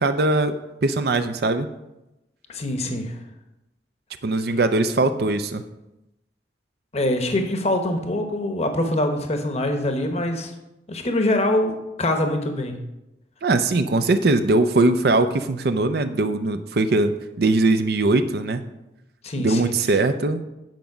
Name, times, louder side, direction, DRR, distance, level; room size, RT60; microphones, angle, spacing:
voice 1, 0.0-1.7 4.2-5.6 13.4-18.6 19.4-20.4, right 2 dB, 60° right, 9 dB, 0.5 m, -21 dB
voice 2, 2.5-3.2 6.9-10.5 10.9-12.8 19.2-19.7, left 1 dB, 40° left, 5 dB, 1.0 m, -24 dB
9.2 x 5.1 x 5.9 m, 0.95 s
head